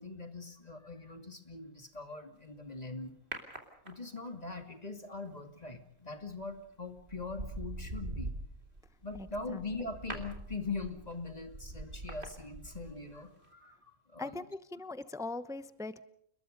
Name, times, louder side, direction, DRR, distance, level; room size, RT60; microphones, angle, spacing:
voice 1, 0.0-3.2 3.8-8.3 9.0-14.3, left 3 dB, 30° left, 6 dB, 2.6 m, -42 dB
sound 1, 3.3-4.3 6.2-6.5 7.0-13.2 13.4-13.5, right 2 dB, 50° right, 3.6 m, -43 dB
voice 2, 9.1-9.6 14.2-16.0, left 2 dB, 5° right, 13 dB, 0.8 m, -41 dB
30.0 x 21.0 x 5.3 m, 0.69 s
omnidirectional pair, 1.4 m